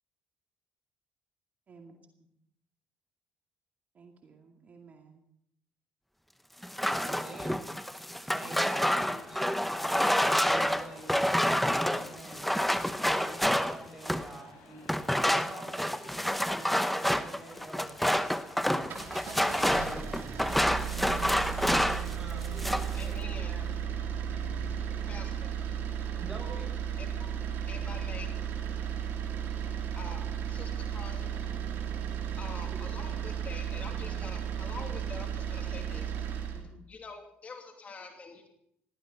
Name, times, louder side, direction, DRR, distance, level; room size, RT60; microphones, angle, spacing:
voice 1, 1.7-2.0 3.9-5.2 32.5-32.9 36.5-36.9, right 5 dB, 45° right, 2 dB, 2.3 m, -53 dB
sound 1, 6.6-14.3 14.9-22.1 22.4-23.0, equal, 5° left, 0.9 m, -28 dB
voice 2, 7.0-7.6 8.2-9.5 10.3-12.5 13.2-14.8 15.2-17.9 19.6-20.6 21.0-23.6 26.2-26.8, right 1 dB, 15° right, 1 dB, 7.8 m, -46 dB
sound 2, 8.5-19.6, left 3 dB, 75° left, 7.4 m, -55 dB
sound 3, 18.7-36.6, right 8 dB, 70° right, 3.0 m, -34 dB
voice 3, 22.9-23.6 24.0-26.2 27.0-31.7 32.1-36.3 36.9-38.5, left 4 dB, 40° left, 3 dB, 2.8 m, -47 dB
18.0 x 17.0 x 4.1 m, 0.74 s
supercardioid pair, 80°, 4 cm